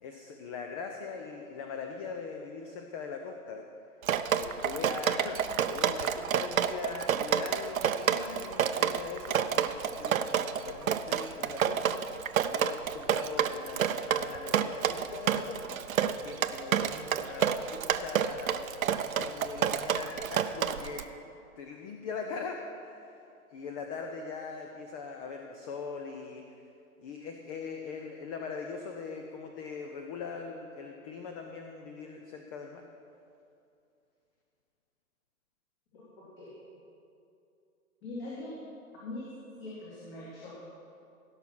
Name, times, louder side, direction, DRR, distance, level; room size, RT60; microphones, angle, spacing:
voice 1, 0.0-3.7 4.3-12.2 12.4-15.8 16.2-21.1 21.6-23.2 23.5-26.5 27.0-32.9, left 5 dB, 25° left, 4 dB, 0.6 m, -41 dB
Drip, 4.0-21.0, right 8 dB, 65° right, 0.7 m, -29 dB
voice 2, 35.9-36.5 38.0-38.5 39.0-39.3 39.6-40.5, left 2 dB, 40° left, -7 dB, 3.0 m, -42 dB
17.0 x 5.8 x 6.0 m, 2.6 s
figure-of-eight pair, 120°, 44 cm